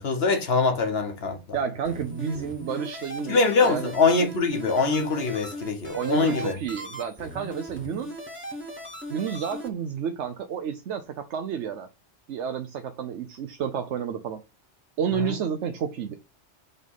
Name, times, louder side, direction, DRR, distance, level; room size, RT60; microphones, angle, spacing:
voice 1, 0.0-1.4 3.3-6.6, left 4 dB, 60° left, 1.4 m, -23 dB
voice 2, 1.5-3.9 5.9-8.1 9.1-11.9 12.3-14.4 15.0-16.2, right 7 dB, 80° right, 1.0 m, -30 dB
sound 1, 1.8-9.7, equal, 10° right, 1.8 m, -39 dB
5.5 x 3.7 x 5.5 m
omnidirectional pair, 1.2 m